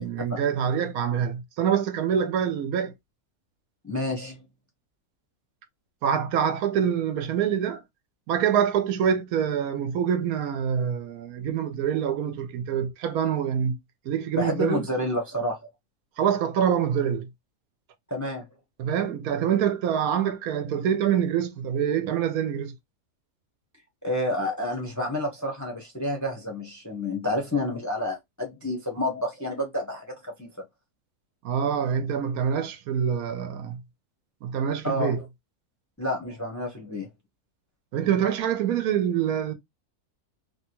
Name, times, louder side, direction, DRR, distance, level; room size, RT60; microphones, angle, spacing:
voice 1, 0.0-2.9 6.0-7.8 8.3-13.8 14.1-14.8 16.2-17.3 18.8-22.7 31.4-33.8 34.4-35.2 37.9-39.5, right 8 dB, 80° right, 1.1 m, -25 dB
voice 2, 3.8-4.4 14.4-15.6 18.1-18.5 24.0-30.5 34.8-35.2 36.0-37.1, left 1 dB, 15° left, 0.6 m, -29 dB
3.2 x 2.2 x 2.9 m
omnidirectional pair, 1.5 m